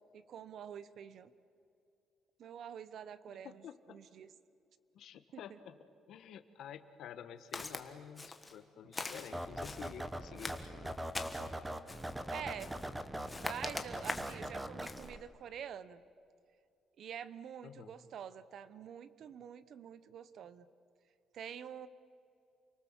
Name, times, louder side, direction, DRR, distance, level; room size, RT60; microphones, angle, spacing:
voice 1, 0.1-1.3 2.4-4.3 5.3-5.6 12.3-12.9 13.4-16.0 17.0-20.7 21.3-21.9, right 8 dB, 55° right, 15 dB, 0.9 m, -47 dB
voice 2, 3.4-4.0 4.9-5.8 6.1-11.0 17.6-17.9, left 9 dB, 65° left, 10 dB, 1.4 m, -50 dB
Walk footsteps, 7.5-7.8 8.2-8.6 8.9-9.9 10.4-11.5 11.9-12.2 12.6-12.9 13.3-14.4 14.8-15.1, left 3 dB, 15° left, 1.4 m, -43 dB
sound 1, 9.3-15.2, right 1 dB, 5° right, 0.9 m, -42 dB
29.5 x 23.5 x 7.4 m, 2.5 s
cardioid pair, 175°, 0 cm